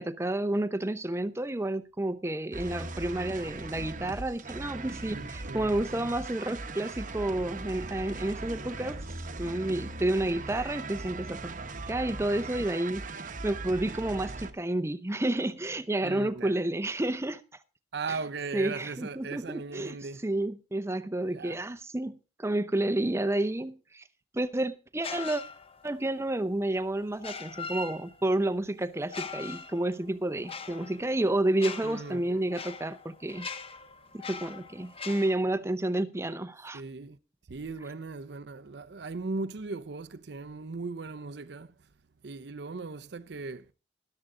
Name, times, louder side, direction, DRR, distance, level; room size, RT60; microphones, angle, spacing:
voice 1, 0.0-9.1 9.4-11.5 11.9-17.4 18.1-18.2 18.5-20.0 20.2-24.0 24.3-25.4 25.8-33.5 34.1-36.8, right 1 dB, 15° right, 0.6 m, -30 dB
sound 1, 2.5-14.5, right 3 dB, 45° right, 1.0 m, -39 dB
voice 2, 5.1-5.7 16.0-16.6 17.9-20.2 21.3-21.6 31.8-32.4 36.7-37.2 37.5-41.8 42.2-43.7, right 3 dB, 65° right, 0.6 m, -38 dB
sound 2, 25.0-26.0 27.1-28.4 29.0-35.3, left 5 dB, 30° left, 0.9 m, -41 dB
13.0 x 12.0 x 3.7 m
head